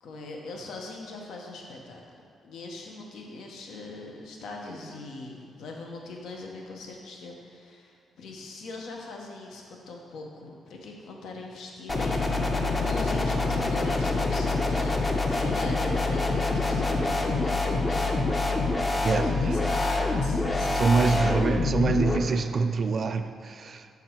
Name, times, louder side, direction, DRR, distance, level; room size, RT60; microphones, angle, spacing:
voice 1, 0.0-2.0 2.4-18.8 19.1-21.3, left 3 dB, 75° left, 0 dB, 0.8 m, -41 dB
sound 1, 11.9-22.2, left 3 dB, 25° left, 0.6 m, -26 dB
voice 2, 19.0-19.6 20.7-23.9, right 4 dB, 45° right, 9 dB, 0.3 m, -25 dB
5.9 x 4.6 x 4.4 m, 2.5 s
cardioid pair, 105°, 0 cm